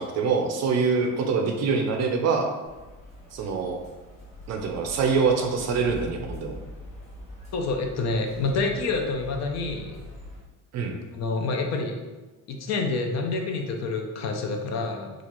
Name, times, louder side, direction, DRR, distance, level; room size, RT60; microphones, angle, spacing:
voice 1, 0.0-2.5 3.3-3.8 4.5-6.6 10.7-11.0, right 5 dB, 50° right, 3 dB, 0.5 m, -25 dB
sound 1, 2.7-10.4, equal, 20° left, 1.0 m, -43 dB
voice 2, 7.5-10.0 11.1-12.0 12.5-15.1, left 3 dB, 50° left, 3 dB, 0.5 m, -28 dB
4.0 x 2.4 x 3.0 m, 1.2 s
cardioid pair, 150°, 35 cm